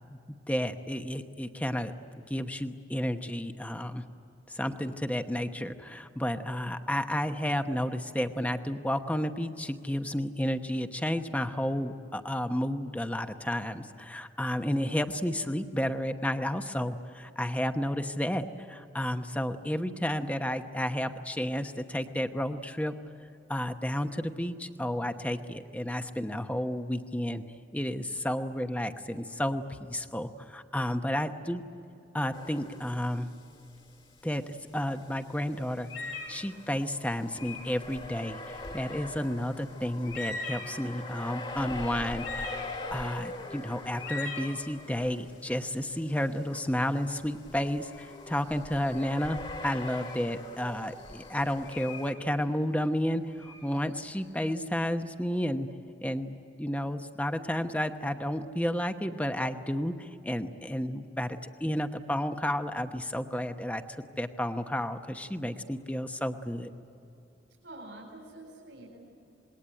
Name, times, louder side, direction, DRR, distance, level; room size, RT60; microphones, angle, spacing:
voice 1, 0.5-1.9 2.3-4.0 4.5-22.9 23.5-27.4 27.7-31.6 32.1-33.3 34.2-34.4 34.7-55.7 56.0-66.7, equal, 10° left, 7 dB, 1.0 m, -32 dB
sound 1, 32.3-33.4 33.7-33.8 34.9-52.1, left 2 dB, 30° left, 2.1 m, -43 dB
sound 2, 35.8-36.5 37.3-37.8 39.6-39.7 40.0-40.9 41.5-41.6 42.1-43.0 43.9-44.5 47.9-48.1 48.8-49.2 49.9-50.3 50.9-52.2 53.3-54.4, left 3 dB, 80° left, 5.3 m, -40 dB
voice 2, 67.6-69.0, right 1 dB, 80° right, -1 dB, 4.3 m, -46 dB
27.0 x 21.5 x 9.0 m, 2.7 s
head